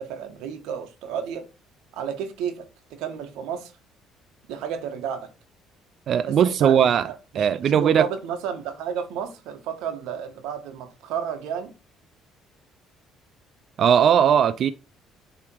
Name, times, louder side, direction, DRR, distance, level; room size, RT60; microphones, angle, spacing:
voice 1, 0.0-1.5 1.9-3.7 4.5-5.3 6.3-11.7, right 8 dB, 90° right, 1.3 m, -32 dB
voice 2, 6.1-7.1 7.4-8.1 13.8-14.7, right 8 dB, 45° right, 0.3 m, -19 dB
7.1 x 3.3 x 4.5 m
cardioid pair, 160°, 0 cm